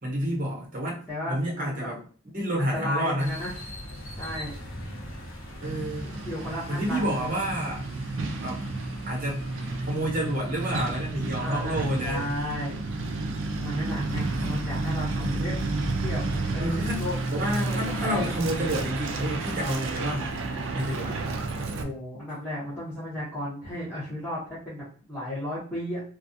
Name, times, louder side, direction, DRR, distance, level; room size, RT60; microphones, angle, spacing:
voice 1, 0.0-1.0 1.3-2.0 2.3-3.3 5.6-6.1 6.7-7.8 8.4-8.7 9.1-9.5 9.9-12.3 14.4-14.5 15.2-15.6 16.6-20.5 20.7-21.2, equal, 40° right, -2 dB, 0.9 m, -29 dB
voice 2, 1.1-1.9 2.6-3.5 4.2-4.5 6.0-7.4 11.3-12.8 13.6-15.6 16.0-16.2 16.5-17.2 17.6-18.3 21.8-26.0, left 1 dB, 10° left, -11 dB, 0.8 m, -34 dB
sound 1, 3.2-20.0, equal, 75° left, 0.8 m, -43 dB
Truck, 5.6-21.8, right 3 dB, 60° right, 0.3 m, -31 dB
2.4 x 2.3 x 2.6 m, 0.40 s
head